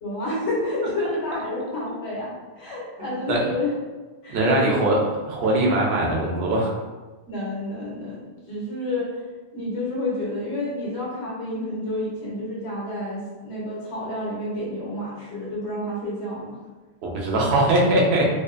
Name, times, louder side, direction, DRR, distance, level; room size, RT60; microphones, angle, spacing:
voice 1, 0.0-3.7 4.2-4.9 7.3-9.2 9.5-16.6, left 1 dB, 85° left, -6 dB, 1.2 m, -29 dB
voice 2, 3.0-3.4 4.3-5.0 5.3-6.7 17.0-18.3, right 1 dB, 75° right, -2 dB, 0.9 m, -21 dB
2.7 x 2.1 x 2.4 m, 1.2 s
omnidirectional pair, 1.1 m